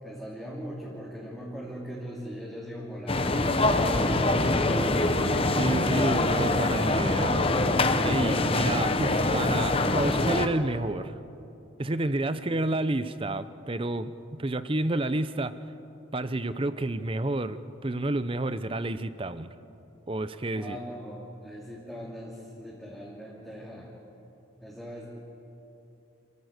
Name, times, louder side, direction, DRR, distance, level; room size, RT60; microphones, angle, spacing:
voice 1, 0.0-5.1 12.3-12.5 20.5-23.9 24.6-25.0, equal, ahead, -6 dB, 2.8 m, -40 dB
sound 1, 3.1-10.5, left 2 dB, 25° left, 0.9 m, -24 dB
voice 2, 5.6-7.4 8.0-11.2 11.8-15.5 16.1-19.5 20.1-20.8, right 2 dB, 25° right, 13 dB, 0.6 m, -30 dB
28.0 x 15.0 x 8.1 m, 2.8 s
head